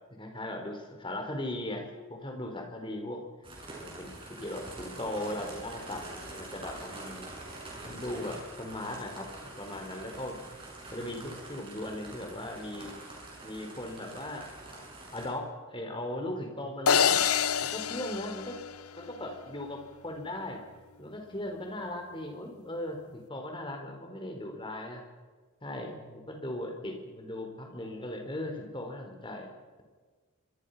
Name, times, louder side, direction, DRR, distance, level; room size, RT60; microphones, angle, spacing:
voice 1, 0.0-3.2 3.8-7.3 7.8-10.5 10.9-12.9 13.4-14.8 15.1-17.3 17.6-18.6 19.0-20.6 21.0-25.0 25.6-29.5, left 1 dB, 25° left, 3 dB, 4.3 m, -38 dB
sound 1, 3.4-15.3, right 2 dB, 25° right, 7.5 m, -45 dB
sound 2, 16.9-19.2, left 7 dB, 90° left, 0.8 m, -27 dB
28.0 x 25.0 x 5.7 m, 1.4 s
head